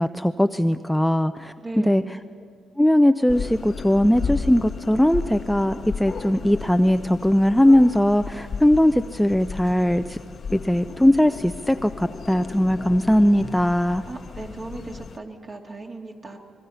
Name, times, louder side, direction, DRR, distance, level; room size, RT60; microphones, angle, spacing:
voice 1, 0.0-2.0 2.8-10.2 10.5-14.0, left 1 dB, 5° left, 10 dB, 0.4 m, -19 dB
voice 2, 1.6-2.1 14.1-16.4, right 2 dB, 35° right, 2 dB, 2.5 m, -37 dB
sound 1, 3.3-15.2, left 5 dB, 50° left, 0.8 m, -35 dB
25.0 x 21.5 x 5.6 m, 2.3 s
cardioid pair, 90°, 0 cm